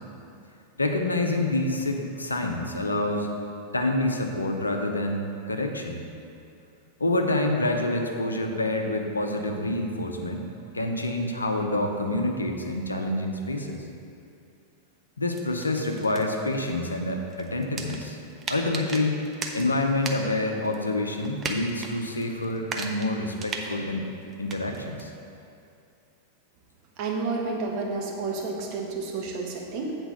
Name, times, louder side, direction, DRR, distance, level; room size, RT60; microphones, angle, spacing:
voice 1, 0.8-3.3 3.7-6.0 7.0-10.4 10.7-13.8 15.2-18.2 18.5-19.3 19.5-24.1 24.4-25.1, left 2 dB, 80° left, 3 dB, 0.7 m, -27 dB
sound 1, 15.3-20.4 20.6-21.9 22.2-25.0, right 4 dB, 25° right, 0.7 m, -38 dB
voice 2, 27.0-30.0, right 3 dB, 40° right, 0 dB, 1.2 m, -30 dB
8.1 x 4.4 x 6.4 m, 2.6 s
figure-of-eight pair, 90°, 0 cm